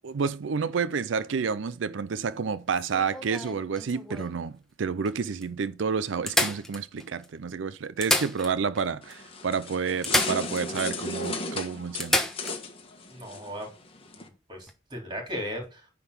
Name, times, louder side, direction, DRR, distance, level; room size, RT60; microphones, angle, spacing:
voice 1, 0.0-12.2, right 5 dB, 75° right, 0.5 m, -30 dB
sound 1, 2.7-4.4 5.0-5.1 5.4-5.5 6.3-7.3 7.8-8.9 9.1-9.2 10.0-10.9 11.2-11.3 12.0-12.6 14.5-14.7, left 1 dB, ahead, 1.1 m, -29 dB
sound 2, 9.0-14.3, left 3 dB, 30° left, 1.5 m, -35 dB
voice 2, 13.1-13.7 14.2-15.9, equal, 25° right, 3.7 m, -37 dB
9.9 x 3.9 x 6.8 m
head